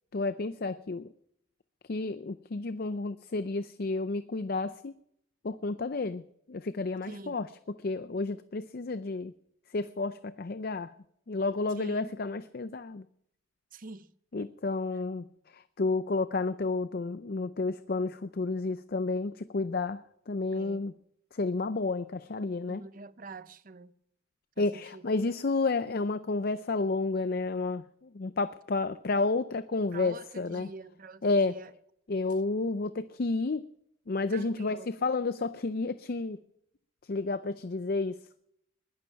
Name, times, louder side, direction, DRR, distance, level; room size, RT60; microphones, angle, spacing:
voice 1, 0.1-1.1 1.9-4.9 5.4-7.5 7.8-9.3 9.7-10.9 11.3-13.1 14.3-20.9 21.3-22.8 24.6-30.7 31.2-31.6 32.1-33.7 34.1-36.4 37.0-38.2, left 3 dB, 50° left, 0.5 m, -31 dB
voice 2, 7.0-7.4 11.7-12.1 13.7-14.1 20.5-20.8 22.6-23.9 24.6-25.0 29.9-31.7 34.3-34.9, right 3 dB, 45° right, 0.7 m, -45 dB
21.0 x 11.5 x 5.8 m
head